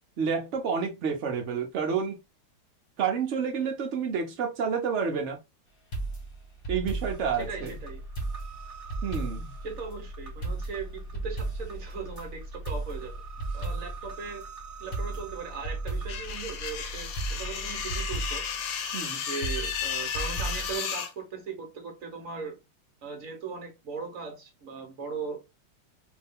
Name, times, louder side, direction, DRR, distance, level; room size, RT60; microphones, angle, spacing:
voice 1, 0.2-2.2 3.0-5.4 6.7-7.8 9.0-9.5 18.9-19.2, right 6 dB, 85° right, 0.6 m, -29 dB
sound 1, 5.9-7.8 8.2-9.6 9.9-10.0 10.4-12.3 12.7-14.1 14.4-14.5 14.9-16.8 17.2-18.6 19.4-20.8, right 3 dB, 30° left, 1.2 m, -35 dB
sound 2, 7.0-17.9, right 1 dB, 25° right, 1.7 m, -42 dB
voice 2, 7.4-8.0 9.6-13.1 13.5-14.4 14.8-18.4 19.1-22.6 23.0-25.6, right 5 dB, 50° right, 1.1 m, -38 dB
sound 3, 16.1-21.1, left 7 dB, 75° left, 1.4 m, -33 dB
3.4 x 2.6 x 3.5 m
omnidirectional pair, 2.3 m